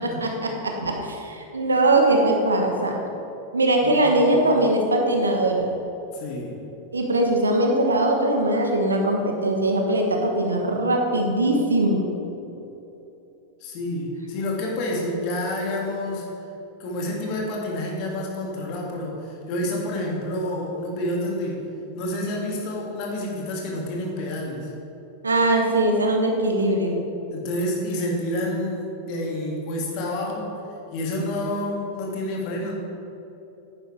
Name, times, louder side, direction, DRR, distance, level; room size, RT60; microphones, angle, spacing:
voice 1, 0.2-3.0 3.5-5.7 6.9-12.1 25.2-27.0, right 1 dB, 75° right, 2 dB, 1.2 m, -21 dB
voice 2, 3.8-4.3 6.1-6.6 13.6-16.3 16.8-21.6 21.9-24.7 27.3-30.6 30.9-32.8, left 1 dB, 45° left, -1 dB, 2.2 m, -29 dB
10.5 x 9.8 x 3.4 m, 3.0 s
figure-of-eight pair, 90°, 0 cm